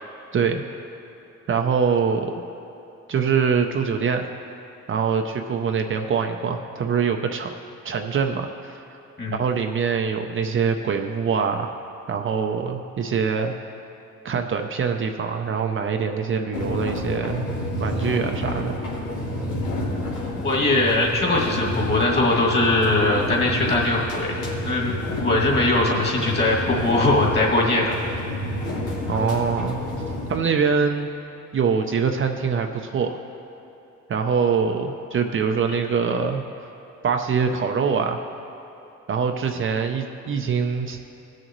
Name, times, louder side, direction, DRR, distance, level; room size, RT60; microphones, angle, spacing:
voice 1, 0.3-0.6 1.5-2.4 3.1-4.3 4.9-7.5 7.8-8.8 9.3-11.7 12.1-13.5 14.2-17.5 17.8-18.8 29.1-29.8 30.3-31.1 31.5-33.2 34.1-36.4 37.0-38.2 39.1-41.0, right 6 dB, 40° right, 4 dB, 0.6 m, -24 dB
sound 1, 16.5-30.4, left 1 dB, 90° left, 2.1 m, -29 dB
voice 2, 20.4-28.0, left 2 dB, 35° left, -3 dB, 2.3 m, -21 dB
18.0 x 6.5 x 3.1 m, 2.9 s
cardioid pair, 90°, 30 cm